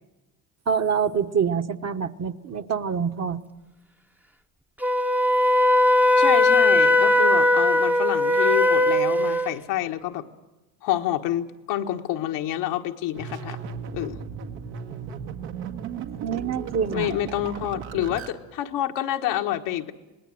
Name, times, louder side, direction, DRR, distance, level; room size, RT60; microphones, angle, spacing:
voice 1, 0.7-3.4 16.2-17.1, right 7 dB, 35° right, 7 dB, 1.1 m, -26 dB
Wind instrument woodwind instrument, 4.8-9.5, left 1 dB, 5° right, 0.8 m, -19 dB
voice 2, 6.2-10.3 10.8-13.6 13.9-14.2 16.9-19.9, left 12 dB, 80° left, 4 dB, 1.5 m, -28 dB
sound 1, 13.1-18.3, right 6 dB, 85° right, 2.1 m, -36 dB
27.0 x 19.5 x 7.7 m, 1.1 s
supercardioid pair, 85°, 43 cm